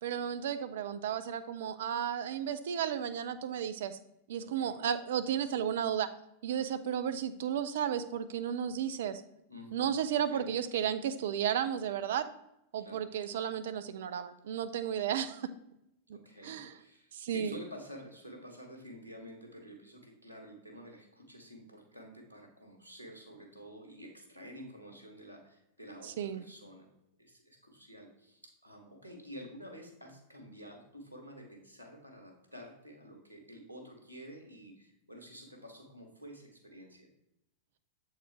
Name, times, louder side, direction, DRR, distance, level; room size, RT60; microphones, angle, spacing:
voice 1, 0.0-4.0 4.3-6.1 6.4-9.2 9.7-12.3 12.7-15.5 16.1-16.2 16.4-16.7 17.1-17.5 26.2-26.4, right 9 dB, 60° right, 11 dB, 0.4 m, -33 dB
voice 2, 4.4-4.7 9.5-9.9 10.2-10.5 12.8-13.1 16.1-26.9 27.2-37.1, equal, 90° left, 2 dB, 1.3 m, -50 dB
7.4 x 4.3 x 3.4 m, 0.83 s
figure-of-eight pair, 90°, 0 cm